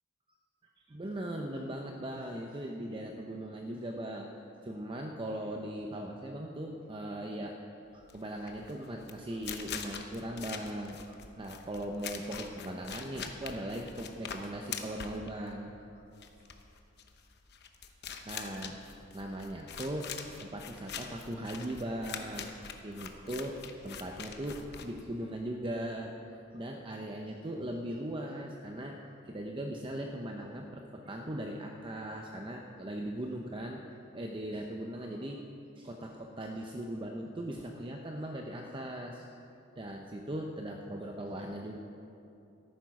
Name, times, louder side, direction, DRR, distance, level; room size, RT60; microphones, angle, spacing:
voice 1, 0.9-4.3 4.6-7.6 7.9-15.8 18.2-18.8 19.1-20.1 20.4-22.5 22.8-26.1 26.5-35.4 35.8-39.3 39.8-41.8, right 1 dB, 25° right, 2 dB, 0.6 m, -39 dB
sound 1, 8.0-25.4, left 7 dB, 50° left, 0.9 m, -44 dB
13.0 x 9.5 x 6.0 m, 2.8 s
head